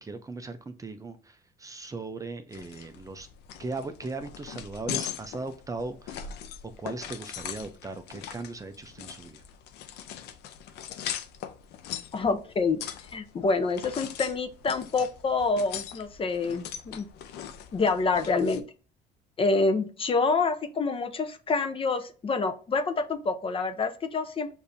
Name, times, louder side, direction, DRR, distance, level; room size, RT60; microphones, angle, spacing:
voice 1, 0.0-3.3 3.6-6.3 6.6-9.4, right 3 dB, 20° right, 8 dB, 0.5 m, -38 dB
sound 1, 2.5-18.6, left 9 dB, 80° left, 0.6 m, -40 dB
voice 2, 12.1-12.8 13.1-17.1 17.7-18.6 19.4-24.5, left 4 dB, 30° left, 9 dB, 0.6 m, -27 dB
6.8 x 2.7 x 2.6 m, 0.37 s
cardioid pair, 110°, 17 cm